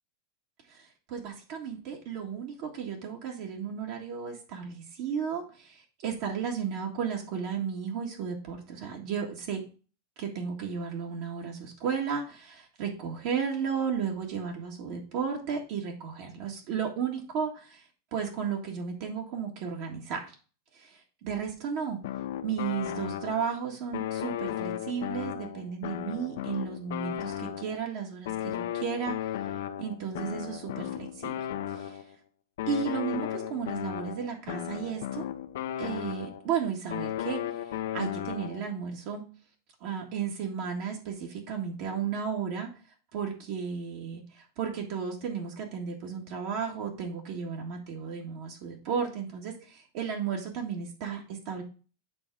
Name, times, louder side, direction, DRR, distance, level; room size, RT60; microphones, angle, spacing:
voice 1, 0.7-9.6 10.2-17.8 18.1-20.3 20.7-22.0 22.4-29.1 29.8-32.0 32.7-35.3 35.8-39.2 39.8-42.7 43.1-51.6, right 7 dB, 50° right, 1 dB, 1.8 m, -34 dB
sound 1, 22.0-23.6 23.9-27.9 28.3-32.1 32.6-36.5 36.9-38.7, left 11 dB, 75° left, 0.7 m, -35 dB
8.5 x 3.6 x 4.8 m, 0.36 s
supercardioid pair, 155°, 0 cm